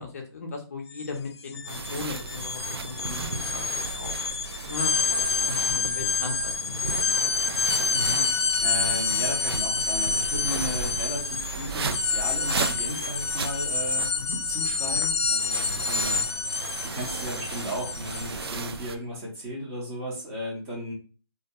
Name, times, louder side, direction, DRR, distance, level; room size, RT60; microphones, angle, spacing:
voice 1, 0.0-7.3 14.2-14.4, left 4 dB, 35° left, 1 dB, 0.5 m, -38 dB
sound 1, 0.9-1.1 1.4-18.6, left 5 dB, 90° left, 0.4 m, -28 dB
sound 2, 1.7-19.0, right 4 dB, 70° right, 0.4 m, -35 dB
voice 2, 7.9-8.3 8.6-14.1 14.5-16.2 16.9-20.9, equal, 15° right, -3 dB, 0.6 m, -35 dB
2.3 x 2.1 x 2.7 m, 0.36 s
hypercardioid pair, 160°, 13 cm